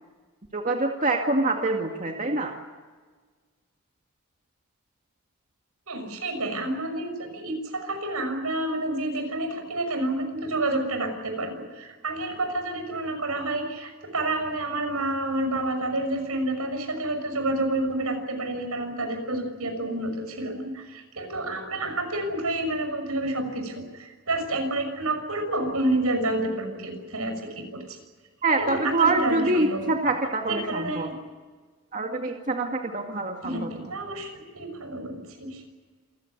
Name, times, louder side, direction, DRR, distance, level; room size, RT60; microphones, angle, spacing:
voice 1, 0.5-2.5 28.4-31.1 31.9-33.7, right 2 dB, 35° right, 2 dB, 2.1 m, -25 dB
voice 2, 5.9-28.0 28.6-30.1 30.5-31.2 33.4-35.6, right 2 dB, 85° right, 6 dB, 6.3 m, -29 dB
27.5 x 16.0 x 9.6 m, 1.4 s
head